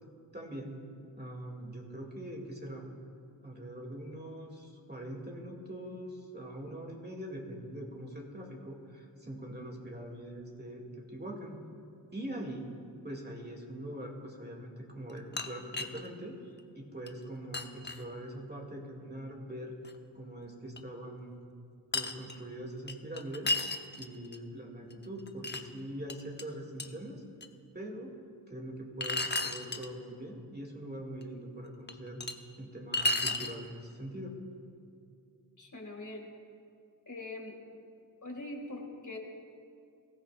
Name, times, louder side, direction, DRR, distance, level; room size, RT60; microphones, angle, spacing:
voice 1, 0.3-0.8 1.2-2.9 3.4-11.6 12.1-12.7 13.0-16.3 16.8-19.7 20.1-21.4 21.9-23.5 23.9-27.2 27.7-28.2 28.5-32.2 32.6-34.4, right 1 dB, 25° right, 0 dB, 2.4 m, -42 dB
sound 1, 15.1-16.1 16.6-16.7 17.1-17.2 17.5-18.0 19.8-19.9 20.8-20.9 21.9-22.4 22.9-24.4 24.9-25.6 26.1-26.4 26.8-26.9 27.4-27.5 29.0-29.9 31.2-31.3 31.9-32.3 32.9-33.5, left 2 dB, 25° left, 0.8 m, -33 dB
voice 2, 35.6-36.2 37.1-37.6 38.2-39.2, left 2 dB, 45° left, 1 dB, 2.3 m, -42 dB
20.5 x 14.0 x 2.5 m, 2.5 s
cardioid pair, 50°, 43 cm